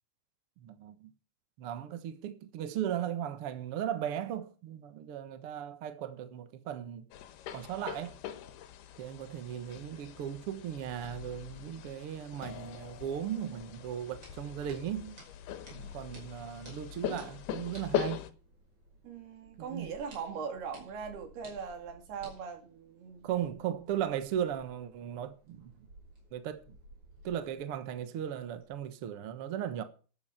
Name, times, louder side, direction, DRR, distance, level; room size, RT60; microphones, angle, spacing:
voice 1, 0.6-1.1 1.6-7.1 7.5-8.2 9.0-15.2 15.7-18.3 19.6-19.9 23.2-25.7 26.3-26.7 27.2-29.8, right 10 dB, 65° right, 1.4 m, -37 dB
sound 1, 7.1-18.3, left 11 dB, 90° left, 3.1 m, -41 dB
sound 2, 12.4-20.0, left 7 dB, 60° left, 2.6 m, -56 dB
sound 3, 13.4-28.8, right 1 dB, 30° right, 6.0 m, -58 dB
voice 2, 19.0-23.3, right 6 dB, 85° right, 4.7 m, -40 dB
12.5 x 9.5 x 5.7 m
omnidirectional pair, 4.4 m